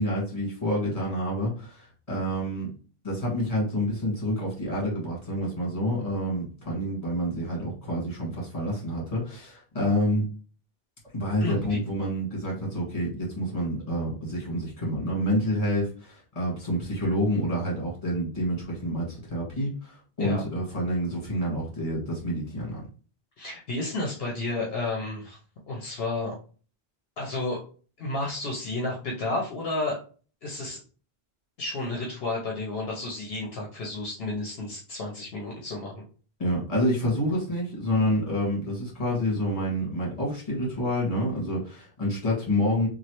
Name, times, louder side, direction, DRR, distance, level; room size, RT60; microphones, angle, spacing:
voice 1, 0.0-2.7 3.0-10.2 11.1-22.8 36.4-42.9, equal, 35° left, -4 dB, 1.6 m, -28 dB
voice 2, 11.4-11.8 20.2-20.4 23.4-25.4 25.7-26.3 27.2-27.6 28.0-30.0 30.4-30.8 31.6-36.0, left 2 dB, 70° left, -2 dB, 0.9 m, -31 dB
3.1 x 2.4 x 2.9 m, 0.39 s
omnidirectional pair, 1.0 m